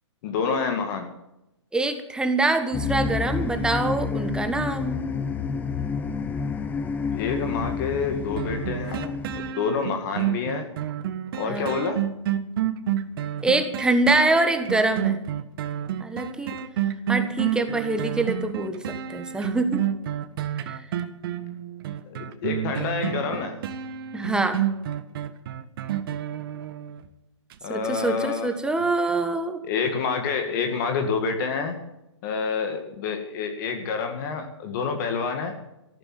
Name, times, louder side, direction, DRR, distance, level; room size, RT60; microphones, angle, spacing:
voice 1, 0.2-1.1 7.1-10.7 11.3-12.1 22.0-23.6 27.6-28.5 29.6-31.8 32.2-35.6, left 5 dB, 40° left, 6 dB, 2.1 m, -28 dB
voice 2, 1.7-5.0 11.4-11.8 13.4-15.2 16.0-16.6 17.1-19.9 20.7-20.8 24.1-24.6 27.7-29.6, right 2 dB, 5° right, 7 dB, 1.4 m, -25 dB
sound 1, 2.7-9.5, left 5 dB, 10° left, 0.9 m, -29 dB
sound 2, 8.4-27.1 27.5-27.6, right 10 dB, 50° right, 1.5 m, -29 dB
14.0 x 12.0 x 7.7 m, 0.90 s
hypercardioid pair, 140°, 16 cm